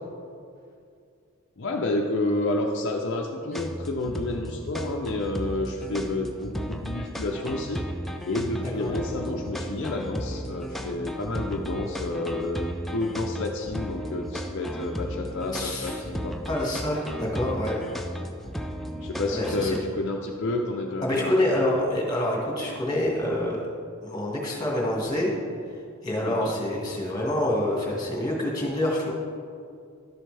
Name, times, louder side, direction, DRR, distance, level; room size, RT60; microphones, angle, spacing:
voice 1, 1.6-7.8 8.3-16.4 19.0-21.7 26.2-26.5, left 2 dB, 55° left, 0 dB, 0.6 m, -30 dB
sound 1, 3.5-19.8, equal, ahead, 0.4 m, -34 dB
voice 2, 15.5-16.0 16.5-17.8 19.3-19.7 21.0-23.7 24.0-25.3 26.0-29.1, left 1 dB, 20° left, -3 dB, 1.8 m, -26 dB
12.0 x 7.6 x 3.4 m, 2.4 s
head